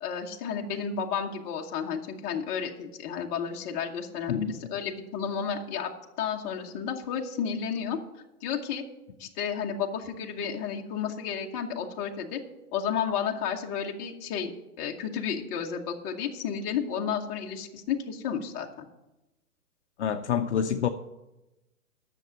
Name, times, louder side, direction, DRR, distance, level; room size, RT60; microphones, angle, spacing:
voice 1, 0.0-5.9 6.2-8.0 8.4-8.8 9.2-12.4 12.7-14.5 14.8-18.8, left 7 dB, 20° left, 1 dB, 1.0 m, -32 dB
voice 2, 20.0-20.9, left 8 dB, 50° left, 6 dB, 0.7 m, -27 dB
10.5 x 7.0 x 7.6 m, 0.97 s
hypercardioid pair, 145°, 45 cm